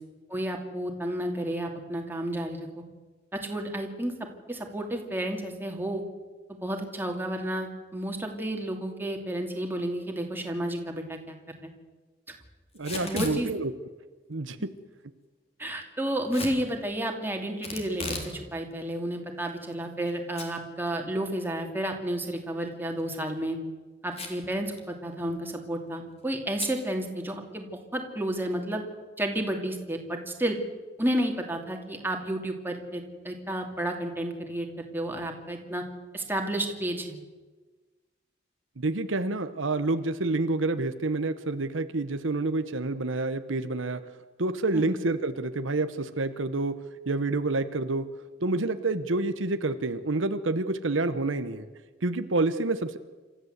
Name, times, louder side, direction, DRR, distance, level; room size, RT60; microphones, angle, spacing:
voice 1, 0.3-2.8 3.3-4.1 4.5-6.0 6.6-11.7 13.0-13.5 15.6-23.6 24.0-27.7 27.9-28.8 29.2-30.6 31.0-35.8 36.1-37.2 44.7-44.9, right 1 dB, 10° right, 2 dB, 2.7 m, -31 dB
voice 2, 12.7-13.7 14.3-14.6 38.8-44.0 44.4-46.8 47.1-48.1 48.4-51.7 52.0-53.0, right 2 dB, 85° right, 10 dB, 1.0 m, -28 dB
Packing tape duct tape / Tearing, 12.8-13.4 16.3-16.6 17.6-18.3 18.7-18.8 19.5-20.1 20.4-20.5 20.9-21.0 22.9-23.2 24.1-24.5 24.8-24.9 25.1-25.5 26.6-26.8, left 2 dB, 35° left, 3.5 m, -36 dB
27.5 x 14.0 x 8.1 m, 1.3 s
head